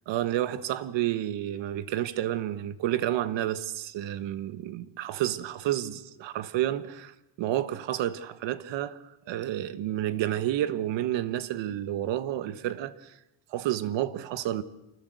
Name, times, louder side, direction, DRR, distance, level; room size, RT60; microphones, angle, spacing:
voice 1, 0.1-13.1 13.5-14.6, right 12 dB, 85° right, 1.4 m, -30 dB
29.0 x 20.0 x 8.1 m
cardioid pair, 130°, 43 cm